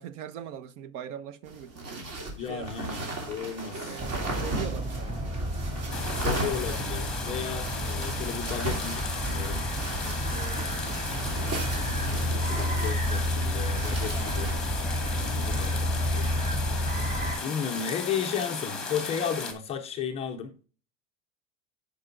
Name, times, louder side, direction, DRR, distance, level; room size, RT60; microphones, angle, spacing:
voice 1, 0.0-2.0 2.4-2.7 3.8-5.2 10.3-10.8 15.1-15.7, right 9 dB, 70° right, 0.8 m, -41 dB
sound 1, 1.5-14.7, right 2 dB, 55° right, 3.1 m, -37 dB
voice 2, 2.4-4.1 6.2-9.6 11.7-14.5 15.2-16.4 17.4-20.7, left 7 dB, 20° left, 0.3 m, -34 dB
sound 2, 4.0-17.4, equal, 20° right, 2.5 m, -30 dB
sound 3, 5.9-19.5, left 4 dB, ahead, 1.1 m, -36 dB
15.0 x 5.2 x 2.5 m
supercardioid pair, 175°, 38 cm